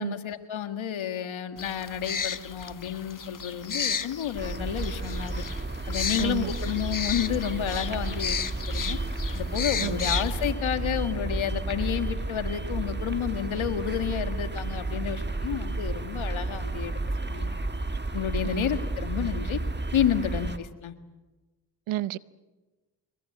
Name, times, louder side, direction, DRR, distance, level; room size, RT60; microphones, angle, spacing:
voice 1, 0.0-5.4 5.9-9.0 9.3-17.5 18.1-19.6 19.9-20.9, left 9 dB, 80° left, 1.9 m, -30 dB
sound 1, 1.6-10.5, left 6 dB, 40° left, 1.2 m, -34 dB
sound 2, 4.3-20.6, right 2 dB, 20° right, 1.8 m, -32 dB
voice 2, 6.2-6.5 9.8-10.1 18.4-18.6 21.9-22.2, right 15 dB, 90° right, 0.7 m, -31 dB
25.0 x 20.5 x 8.7 m
supercardioid pair, 40°, 47 cm